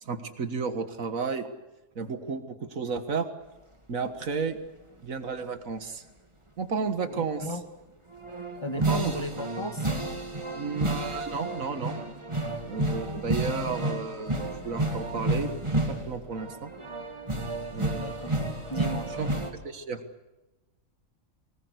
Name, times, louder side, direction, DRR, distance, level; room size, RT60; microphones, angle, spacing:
voice 1, 0.0-1.5 2.0-3.3 3.9-4.6 5.0-6.0 6.6-7.4 8.8-9.2 10.6-12.0 12.7-16.7 17.7-18.5 19.2-19.3 19.6-20.0, right 5 dB, 80° right, 9 dB, 2.0 m, -32 dB
voice 2, 7.1-7.6 8.6-9.9 17.9-18.3 18.7-19.1, left 1 dB, 20° left, 6 dB, 1.7 m, -35 dB
sound 1, 8.1-19.5, right 1 dB, 20° right, 2.4 m, -31 dB
24.5 x 19.0 x 8.2 m, 1.1 s
omnidirectional pair, 1.4 m